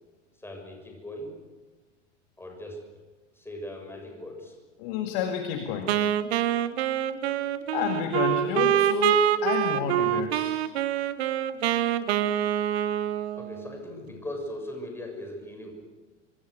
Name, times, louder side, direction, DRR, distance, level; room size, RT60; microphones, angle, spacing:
voice 1, 0.4-1.3 2.4-2.8 3.3-4.6 13.4-15.7, left 1 dB, 5° left, 2 dB, 6.8 m, -39 dB
voice 2, 4.8-6.0 7.7-10.6, left 8 dB, 50° left, 5 dB, 2.2 m, -30 dB
Wind instrument woodwind instrument, 5.9-13.8, right 11 dB, 60° right, 1.2 m, -26 dB
25.5 x 24.5 x 6.5 m, 1.3 s
figure-of-eight pair, 85°, 37 cm